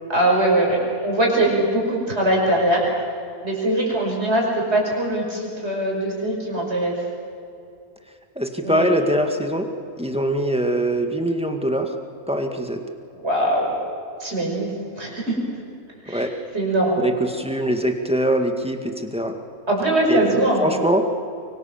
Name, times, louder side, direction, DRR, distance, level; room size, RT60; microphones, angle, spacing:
voice 1, 0.1-2.9 3.4-7.0 8.6-8.9 13.1-13.7 14.2-14.7 15.0-15.3 16.0-16.3 16.5-17.0 19.7-20.7, right 1 dB, 45° right, -2 dB, 6.0 m, -21 dB
voice 2, 8.4-9.7 10.0-12.0 12.3-12.8 16.1-16.3 17.0-19.4 20.1-21.1, right 1 dB, 5° right, 4 dB, 1.9 m, -23 dB
25.0 x 24.0 x 7.3 m, 2.5 s
omnidirectional pair, 1.5 m